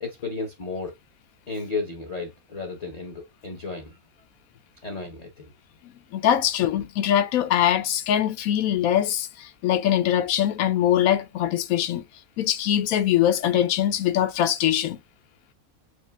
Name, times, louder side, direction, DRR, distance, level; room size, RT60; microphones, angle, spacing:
voice 1, 0.0-0.9 1.5-4.0 4.8-5.5, left 3 dB, 40° left, 0.7 m, -33 dB
voice 2, 5.8-12.0 12.4-15.0, left 11 dB, 75° left, 1.0 m, -22 dB
7.3 x 2.5 x 2.2 m
omnidirectional pair, 1.5 m